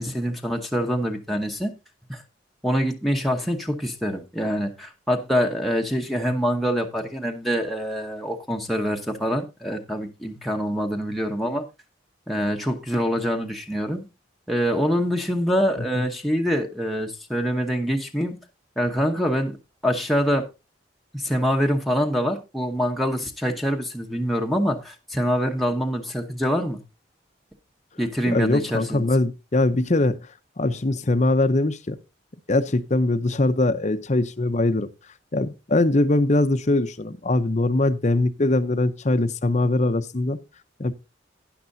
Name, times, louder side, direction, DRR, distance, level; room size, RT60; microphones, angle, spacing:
voice 1, 0.0-1.7 2.1-2.2 2.6-11.6 12.3-14.1 14.5-18.4 18.8-19.6 19.8-20.4 21.1-26.8 28.0-29.1, equal, ahead, 1.0 m, -25 dB
voice 2, 28.3-30.2 30.6-32.0 32.5-34.9 35.3-40.4 40.8-40.9, left 2 dB, 35° left, 0.7 m, -22 dB
12.0 x 10.0 x 2.7 m
head